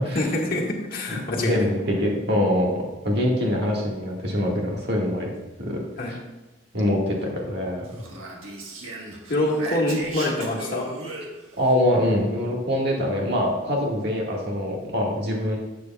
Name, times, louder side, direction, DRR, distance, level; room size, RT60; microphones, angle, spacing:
voice 1, 0.2-1.7 6.0-6.2 9.3-10.9, left 1 dB, 45° left, -2 dB, 1.7 m, -25 dB
voice 2, 1.4-5.3 5.6-6.2 6.7-8.0 11.6-15.6, left 1 dB, 50° right, -1 dB, 1.7 m, -24 dB
Speech, 7.8-11.7, right 2 dB, 85° right, 1.5 m, -37 dB
11.0 x 8.3 x 2.3 m, 1.1 s
head